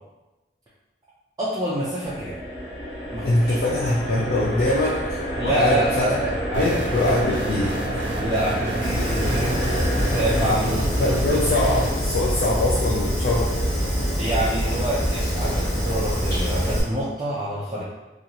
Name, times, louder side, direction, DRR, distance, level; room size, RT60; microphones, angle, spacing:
voice 1, 1.4-2.4 3.1-3.6 5.4-7.2 8.1-9.5 10.1-10.9 14.2-17.8, right 1 dB, 20° right, -8 dB, 0.4 m, -27 dB
sound 1, 2.0-10.5, equal, 75° left, 0.8 m, -29 dB
voice 2, 3.2-6.1 6.6-7.8 11.0-13.5, left 1 dB, 55° left, -4 dB, 0.4 m, -23 dB
sound 2, 6.5-11.9, equal, 75° right, 0.5 m, -29 dB
Fire, 8.8-16.8, equal, 20° left, 0.9 m, -25 dB
2.9 x 2.4 x 2.6 m, 1.1 s
head